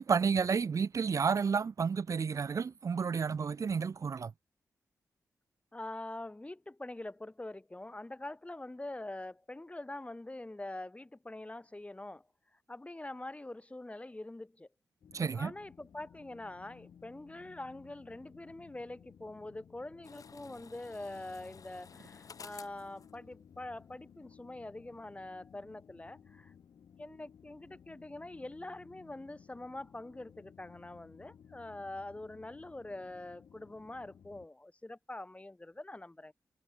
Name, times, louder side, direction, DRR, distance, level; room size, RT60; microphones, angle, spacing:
voice 1, 0.0-4.3 15.1-15.5, right 5 dB, 55° right, 0.5 m, -31 dB
voice 2, 5.7-12.3 12.7-14.7 15.3-26.5 27.0-36.3, left 2 dB, 20° left, 0.9 m, -44 dB
sound 1, 15.0-34.5, left 8 dB, 80° left, 6.9 m, -58 dB
sound 2, 20.0-24.1 24.3-24.4, left 5 dB, 60° left, 1.3 m, -54 dB
supercardioid pair, 45°, 7 cm